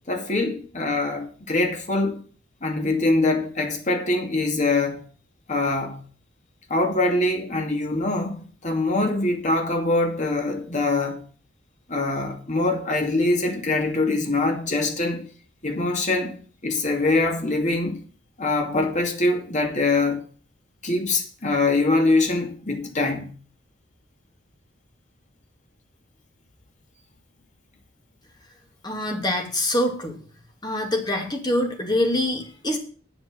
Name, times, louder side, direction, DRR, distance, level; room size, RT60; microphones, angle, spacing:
voice 1, 0.1-2.2 2.6-5.0 5.5-6.0 6.7-11.2 11.9-15.2 15.6-18.0 18.4-20.2 20.8-23.3, left 2 dB, 40° left, 2.5 m, -23 dB
voice 2, 28.8-30.2 30.6-32.8, left 1 dB, 20° left, 2.3 m, -25 dB
8.6 x 8.1 x 7.7 m
head